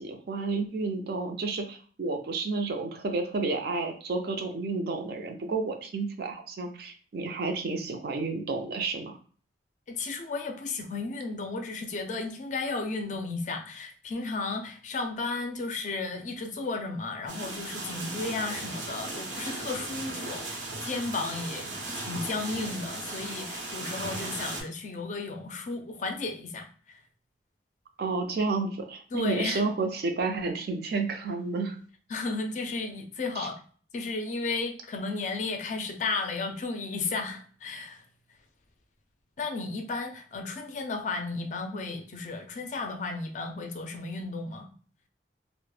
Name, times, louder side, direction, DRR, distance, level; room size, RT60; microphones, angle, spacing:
voice 1, 0.0-9.2 28.0-31.8 33.4-33.5, right 3 dB, 60° right, 4 dB, 0.4 m, -31 dB
voice 2, 9.9-27.0 29.1-29.6 32.1-33.5 33.9-38.0 39.4-44.7, left 3 dB, 40° left, 4 dB, 0.4 m, -34 dB
sound 1, 17.3-24.6, right 2 dB, 90° right, 0.7 m, -37 dB
2.1 x 2.0 x 3.1 m, 0.42 s
head